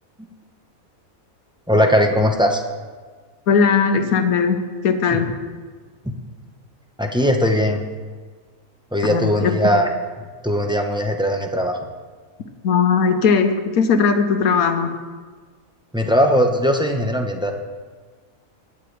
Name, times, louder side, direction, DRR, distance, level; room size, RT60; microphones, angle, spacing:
voice 1, 1.7-2.6 7.0-7.8 8.9-9.9 10.4-11.8 15.9-17.5, equal, 5° right, 2 dB, 0.6 m, -19 dB
voice 2, 3.5-5.4 9.1-9.5 12.6-15.0, left 5 dB, 80° left, 7 dB, 1.3 m, -18 dB
18.5 x 9.7 x 3.3 m, 1.5 s
omnidirectional pair, 1.5 m